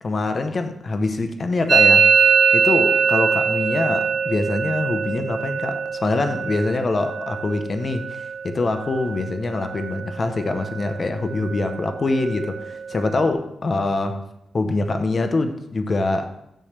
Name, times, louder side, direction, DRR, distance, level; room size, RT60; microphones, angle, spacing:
voice 1, 0.0-14.2 14.5-16.3, left 2 dB, 40° left, 0.8 m, -24 dB
Musical instrument, 1.7-9.3 9.6-10.2 10.4-11.0 11.3-13.3, right 6 dB, 55° right, 0.3 m, -22 dB
9.0 x 3.2 x 6.6 m
cardioid pair, 95°, 0 cm